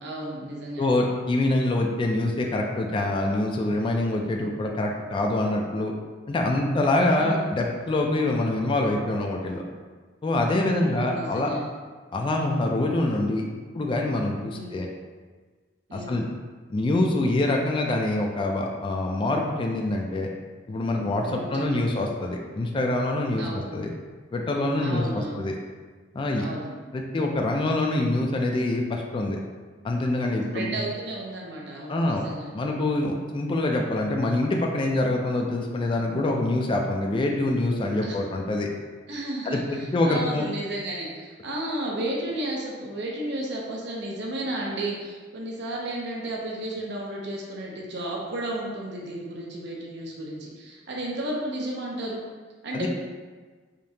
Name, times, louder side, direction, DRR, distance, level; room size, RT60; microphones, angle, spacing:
voice 1, 0.0-1.0 7.2-7.5 10.6-11.7 14.5-14.8 15.9-16.2 21.3-21.9 23.4-23.6 24.8-25.4 26.4-26.8 30.5-32.6 38.0-38.2 39.1-52.2 52.6-52.9, right 1 dB, 65° right, -2 dB, 0.6 m, -33 dB
voice 2, 0.8-5.9 6.3-9.6 10.2-11.5 12.1-13.4 13.7-14.9 15.9-16.3 16.7-20.3 20.7-23.9 24.3-25.6 26.1-26.5 26.9-29.4 29.8-30.8 31.9-32.2 32.5-38.7 39.5-40.4 52.7-52.9, left 2 dB, 25° left, 1 dB, 0.3 m, -25 dB
5.0 x 2.8 x 2.7 m, 1.4 s
head